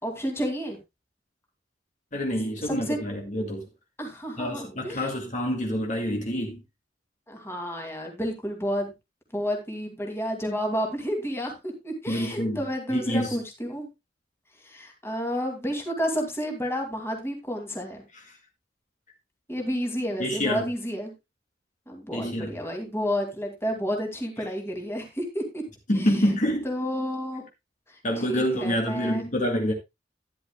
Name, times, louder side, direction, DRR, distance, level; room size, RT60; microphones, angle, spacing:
voice 1, 0.0-0.8 2.6-3.0 4.0-5.1 7.3-8.9 9.3-13.9 14.6-18.0 19.5-21.1 21.9-25.6 26.6-27.4 27.9-28.0 28.3-29.2, equal, 15° left, 2.4 m, -30 dB
voice 2, 2.1-3.6 4.4-6.6 12.1-12.6 12.9-13.4 18.1-18.2 20.2-20.6 22.1-22.5 25.9-26.7 28.0-29.7, equal, 45° left, 2.1 m, -27 dB
12.0 x 10.5 x 2.2 m
head